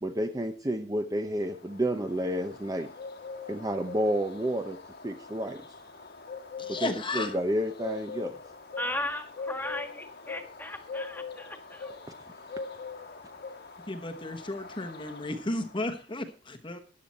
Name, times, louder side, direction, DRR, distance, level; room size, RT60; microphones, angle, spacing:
voice 1, 0.0-2.9 3.5-4.8 5.0-5.6 6.7-8.4, equal, 20° right, 7 dB, 0.8 m, -30 dB
Bird, 1.3-16.0, left 4 dB, 55° left, 1.5 m, -43 dB
voice 2, 6.6-7.4 13.9-16.8, left 2 dB, 25° left, 4 dB, 1.1 m, -34 dB
voice 3, 8.8-12.0, left 1 dB, 10° left, 7 dB, 1.7 m, -36 dB
13.5 x 9.9 x 4.3 m, 0.36 s
head